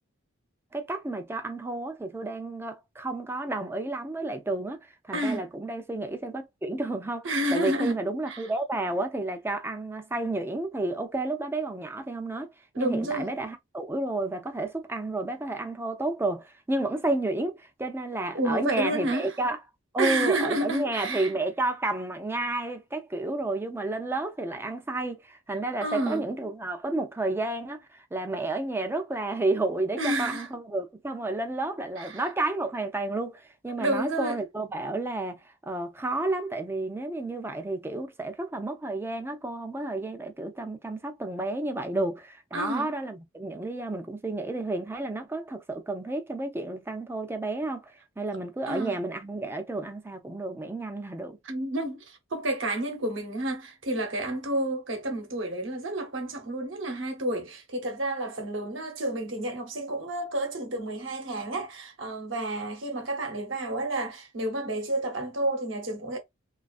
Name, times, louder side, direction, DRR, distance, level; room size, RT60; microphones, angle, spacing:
voice 1, 0.7-4.8 5.0-12.5 12.8-19.6 19.9-51.4, right 2 dB, 10° right, 0.3 m, -31 dB
voice 2, 5.1-5.4 7.2-8.0 8.3-8.5 12.7-13.3 18.3-19.3 20.0-21.3 25.8-26.2 30.0-30.5 32.0-32.2 33.8-34.4 42.5-42.9 48.7-49.0 51.4-66.2, right 1 dB, 65° right, 0.9 m, -30 dB
2.4 x 2.3 x 2.4 m
head